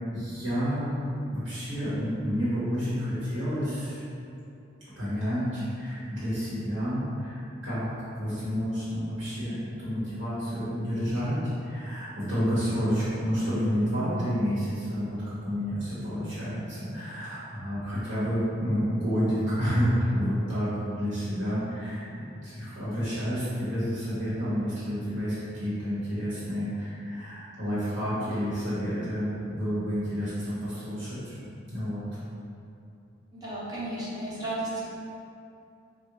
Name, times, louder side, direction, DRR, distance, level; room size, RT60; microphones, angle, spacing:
voice 1, 0.1-4.0 4.8-32.0, equal, 65° right, -12 dB, 1.1 m, -30 dB
voice 2, 33.3-34.8, right 1 dB, 20° right, -9 dB, 0.8 m, -33 dB
3.6 x 2.2 x 3.0 m, 2.7 s
head